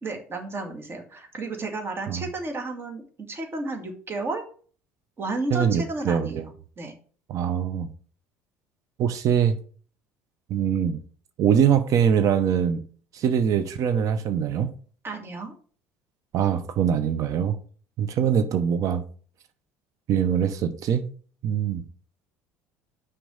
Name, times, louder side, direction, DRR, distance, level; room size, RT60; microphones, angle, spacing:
voice 1, 0.0-4.4 5.2-6.4 6.8-7.0 15.0-15.5, right 2 dB, 35° right, 2.3 m, -32 dB
voice 2, 5.5-6.5 7.3-7.9 9.0-9.6 10.5-11.0 11.4-12.8 13.1-14.7 16.3-17.5 18.0-19.0 20.1-21.0 21.4-21.8, right 8 dB, 50° right, 0.8 m, -23 dB
6.2 x 4.8 x 6.4 m
hypercardioid pair, 65°, 7 cm